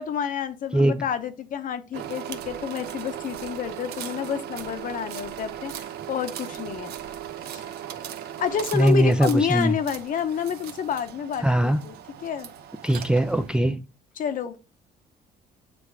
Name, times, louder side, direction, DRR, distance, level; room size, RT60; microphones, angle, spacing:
voice 1, 0.0-6.9 7.5-7.6 8.4-12.5 14.2-14.6, left 7 dB, 55° left, 0.9 m, -29 dB
sound 1, 1.9-13.6, right 10 dB, 70° right, 0.8 m, -38 dB
voice 2, 8.7-9.8 11.4-11.8 12.8-13.8, right 1 dB, 5° right, 0.4 m, -21 dB
7.8 x 3.5 x 4.7 m
cardioid pair, 110°, 17 cm